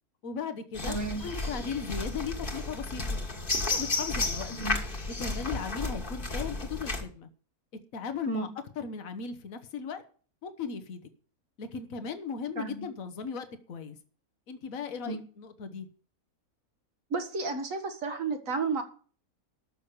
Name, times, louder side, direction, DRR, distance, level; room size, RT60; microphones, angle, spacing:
voice 1, 0.2-3.2 3.6-4.5 5.2-7.3 7.9-8.5 8.8-10.0 10.4-11.0 11.6-14.0 14.5-15.9, left 6 dB, 65° left, 8 dB, 1.6 m, -37 dB
sound 1, 0.7-7.0, left 3 dB, 35° left, 1.9 m, -33 dB
voice 2, 0.9-1.2 4.5-4.7 8.3-8.5 12.6-12.9 15.1-15.2 17.1-18.8, right 3 dB, 60° right, 6 dB, 2.0 m, -32 dB
13.5 x 6.4 x 6.8 m, 0.43 s
omnidirectional pair, 1.6 m